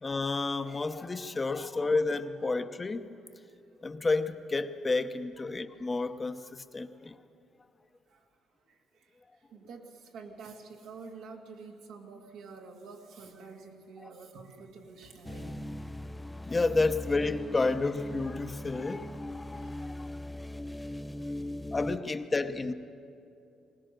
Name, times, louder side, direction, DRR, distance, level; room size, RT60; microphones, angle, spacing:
voice 1, 0.0-3.1 3.8-7.2 16.4-20.1 21.7-22.7, left 3 dB, 25° left, 9 dB, 0.8 m, -31 dB
voice 2, 9.5-15.5 21.2-21.3, right 4 dB, 80° right, 1 dB, 2.2 m, -48 dB
sound 1, 15.2-22.0, left 1 dB, 10° left, 0.5 m, -39 dB
21.0 x 19.0 x 6.7 m, 2.6 s
cardioid pair, 90°, 0 cm